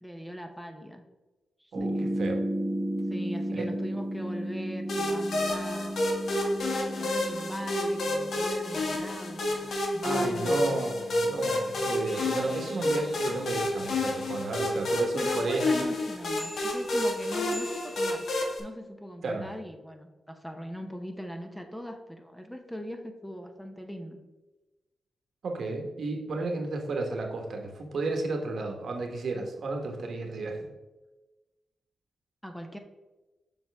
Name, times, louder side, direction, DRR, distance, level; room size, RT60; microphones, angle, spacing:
voice 1, 0.0-1.0 1.6-2.1 3.1-5.9 7.0-10.8 15.2-18.2 18.6-24.2 32.4-32.8, equal, 5° left, 5 dB, 0.8 m, -40 dB
sound 1, 1.7-14.8 16.4-18.5, right 1 dB, 15° right, 1.1 m, -36 dB
voice 2, 1.7-2.4 3.5-3.7 10.0-15.8 19.2-19.5 25.4-30.7, right 3 dB, 70° right, 2 dB, 1.3 m, -33 dB
sound 2, 4.9-18.6, left 1 dB, 75° left, 1.3 m, -30 dB
7.1 x 5.3 x 3.4 m, 1.1 s
cardioid pair, 80°, 0 cm